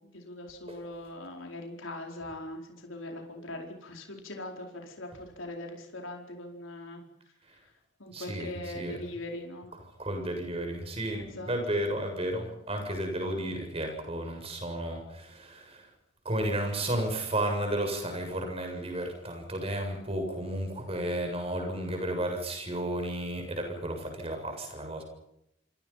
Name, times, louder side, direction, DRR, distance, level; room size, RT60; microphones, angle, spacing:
voice 1, 0.0-7.0 8.0-9.7 11.1-11.5, left 1 dB, 85° left, 2 dB, 4.7 m, -41 dB
voice 2, 8.1-9.0 10.0-15.9 16.2-25.0, right 1 dB, 30° right, 4 dB, 7.3 m, -33 dB
27.5 x 25.0 x 5.8 m, 0.81 s
head